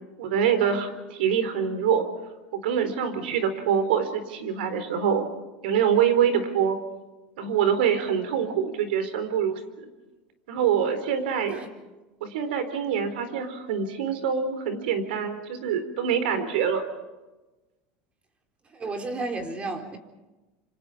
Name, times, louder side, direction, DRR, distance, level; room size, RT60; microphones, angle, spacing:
voice 1, 0.2-2.1 2.5-5.3 5.6-6.8 7.4-9.8 10.5-11.6 12.2-16.8, right 8 dB, 90° right, 9 dB, 4.1 m, -25 dB
voice 2, 18.7-20.0, right 3 dB, 25° right, 5 dB, 4.0 m, -32 dB
27.5 x 26.5 x 5.1 m, 1.1 s
supercardioid pair, 130°, 5 cm